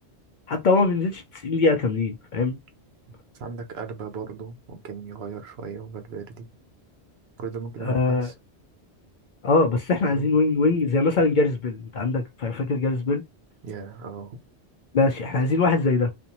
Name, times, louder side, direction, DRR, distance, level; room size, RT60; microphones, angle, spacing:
voice 1, 0.5-2.6 7.8-8.3 9.4-13.2 14.9-16.1, left 3 dB, 55° left, 0.6 m, -22 dB
voice 2, 3.4-6.5 7.4-8.3 10.1-10.3 13.6-14.4, right 5 dB, 75° right, 0.9 m, -37 dB
2.5 x 2.2 x 2.8 m
omnidirectional pair, 1.1 m